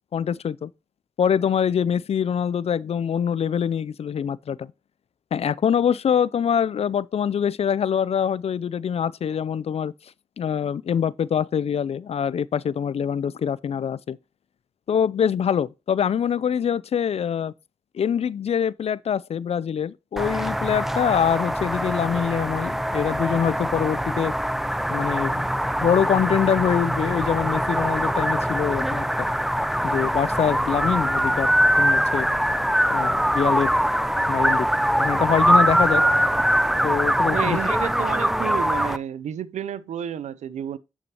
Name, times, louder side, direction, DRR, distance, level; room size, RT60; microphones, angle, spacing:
voice 1, 0.1-0.7 1.2-4.7 5.3-9.9 10.4-14.2 14.9-17.5 17.9-24.3 24.9-25.5 25.8-29.3 29.8-32.3 32.9-33.7 34.3-34.7 35.0-36.0 36.8-37.6, left 8 dB, 60° left, 0.4 m, -24 dB
sound 1, 20.2-39.0, equal, 5° right, 0.5 m, -23 dB
voice 2, 37.3-40.8, right 9 dB, 80° right, 0.6 m, -31 dB
9.1 x 6.1 x 2.9 m
cardioid pair, 50°, 12 cm